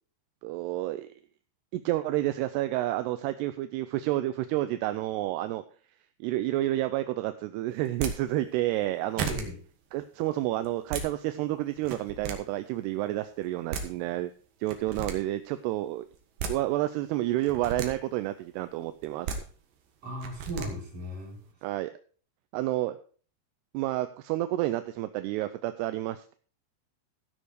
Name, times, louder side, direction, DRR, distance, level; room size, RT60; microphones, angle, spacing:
voice 1, 0.4-1.1 1.7-5.6 6.2-9.3 9.9-14.3 14.6-16.1 16.5-19.3 21.6-21.9 22.5-23.0 23.7-26.3, right 15 dB, 80° right, 11 dB, 2.5 m, -30 dB
sound 1, 7.8-8.1 8.8-8.9 9.2-9.4 10.6-11.1 11.8-12.3 13.4-13.5 13.7-13.9 14.7-15.1 16.1-16.5 17.4-17.9 19.0-19.4 20.2-20.7, right 6 dB, 60° right, 2.8 m, -33 dB
voice 2, 9.2-9.6 20.0-21.4, equal, 35° right, -3 dB, 4.7 m, -37 dB
15.5 x 6.6 x 4.7 m, 0.41 s
omnidirectional pair, 5.1 m